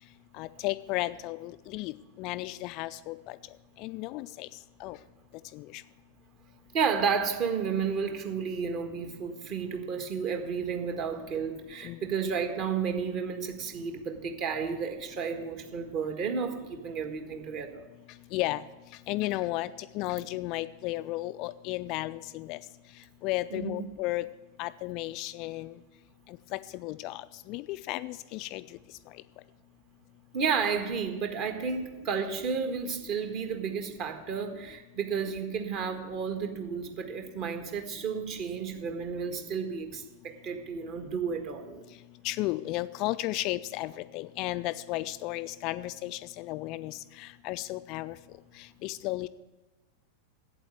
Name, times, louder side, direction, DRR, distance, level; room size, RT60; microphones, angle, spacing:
voice 1, 0.4-1.9 2.2-3.4 3.8-4.5 4.8-5.0 5.5-5.6 11.8-12.0 18.3-18.6 19.1-19.7 19.9-22.6 23.2-24.3 24.6-25.7 26.5-27.2 27.5-28.6 42.2-47.0 47.4-48.1 48.8-49.3, left 18 dB, 40° left, 14 dB, 0.3 m, -33 dB
voice 2, 6.7-17.8 23.5-23.9 30.3-41.8, right 6 dB, 40° right, 6 dB, 1.5 m, -32 dB
8.4 x 8.1 x 9.0 m, 1.1 s
figure-of-eight pair, 90°, 0 cm